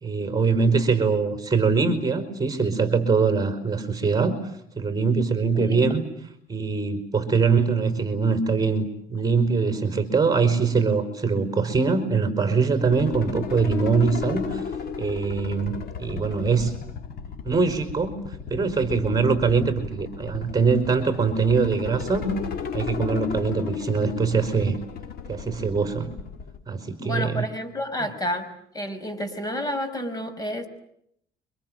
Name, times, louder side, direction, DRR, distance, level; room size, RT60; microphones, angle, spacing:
voice 1, 0.0-4.4 4.8-6.0 6.5-14.6 15.0-16.7 17.4-18.2 18.5-22.3 22.7-24.8 25.3-26.1 26.7-27.4 28.0-28.1, right 5 dB, 20° right, 9 dB, 4.6 m, -23 dB
voice 2, 5.5-5.9 27.0-28.5 28.7-30.7, left 1 dB, 20° left, 9 dB, 5.8 m, -30 dB
sound 1, 12.8-26.6, left 6 dB, 65° left, 3.9 m, -35 dB
29.5 x 25.0 x 7.7 m, 0.72 s
cardioid pair, 110°, 17 cm